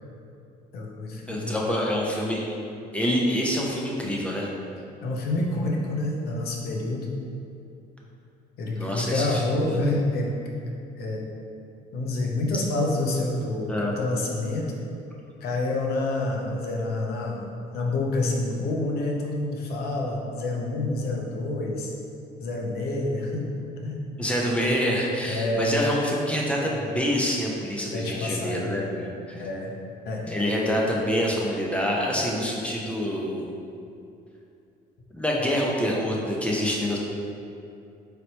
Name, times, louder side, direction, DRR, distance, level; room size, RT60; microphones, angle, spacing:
voice 1, 0.7-1.9 5.0-7.1 8.6-10.7 11.0-11.2 11.9-14.8 15.4-17.4 17.7-21.9 22.4-23.5 23.8-24.0 25.2-25.7 27.9-28.7 29.3-29.7 30.1-30.2, left 2 dB, 70° left, -1 dB, 0.7 m, -28 dB
voice 2, 1.3-2.5 2.9-4.5 8.7-9.8 13.7-14.0 24.2-29.4 30.2-33.5 35.1-37.0, equal, 5° left, -3 dB, 0.6 m, -26 dB
4.0 x 3.3 x 2.9 m, 2.6 s
cardioid pair, 110°, 17 cm